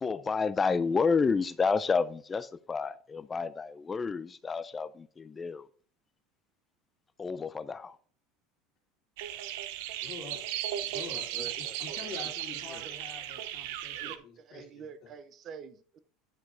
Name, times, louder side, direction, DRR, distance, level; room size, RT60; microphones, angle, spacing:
voice 1, 0.0-5.7 7.2-8.0, left 5 dB, 15° left, 0.4 m, -30 dB
sound 1, 9.2-14.2, right 12 dB, 65° right, 0.8 m, -36 dB
voice 2, 10.0-10.4 10.8-15.1, left 5 dB, 35° left, 2.4 m, -46 dB
voice 3, 11.3-12.0 12.2-13.0 13.9-16.0, right 6 dB, 30° right, 0.7 m, -47 dB
10.5 x 5.1 x 3.8 m
cardioid pair, 180°, 0 cm